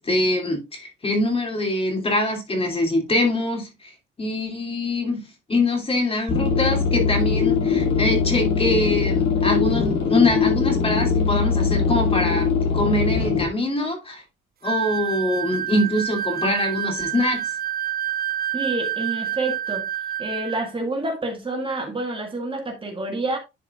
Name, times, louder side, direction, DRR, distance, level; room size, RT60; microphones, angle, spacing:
voice 1, 0.0-12.5 12.7-14.2 14.6-17.6, left 1 dB, 30° left, 2.8 m, -24 dB
sound 1, 6.3-13.5, left 6 dB, 60° left, 2.3 m, -21 dB
sound 2, 14.6-20.7, right 11 dB, 50° right, 0.7 m, -28 dB
voice 2, 18.5-19.8 20.2-23.4, right 2 dB, 25° right, 1.9 m, -28 dB
11.0 x 4.6 x 2.4 m
cardioid pair, 90°, 20 cm